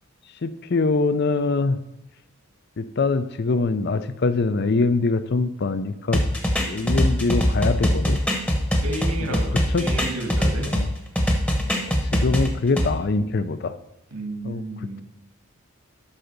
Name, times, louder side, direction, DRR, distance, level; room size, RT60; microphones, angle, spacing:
voice 1, 0.4-1.8 2.8-6.2 6.7-8.2 9.2-9.4 9.7-9.9 10.6-10.9 11.5-13.7 14.4-15.0, left 3 dB, 50° left, 12 dB, 0.5 m, -24 dB
sound 1, 6.1-10.9 11.2-12.9, equal, 5° left, 1.0 m, -22 dB
voice 2, 8.8-10.7 14.1-15.0, right 2 dB, 85° right, 2 dB, 2.1 m, -32 dB
11.5 x 3.8 x 6.6 m, 0.88 s
head